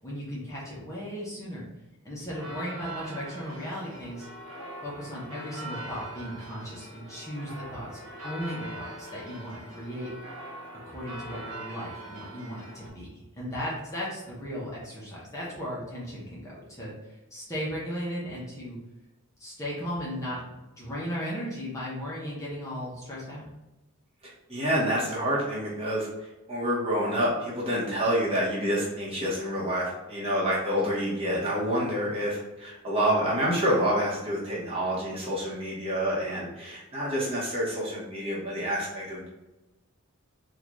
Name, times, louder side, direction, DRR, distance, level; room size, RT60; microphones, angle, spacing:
voice 1, 0.0-1.6 2.0-4.3 4.8-10.1 10.8-18.8 19.4-23.5, equal, 15° left, -6 dB, 0.8 m, -36 dB
sound 1, 2.3-12.9, right 1 dB, 70° right, 1.1 m, -42 dB
voice 2, 24.5-39.3, equal, 25° right, -6 dB, 1.1 m, -28 dB
3.7 x 2.4 x 3.0 m, 1.0 s
head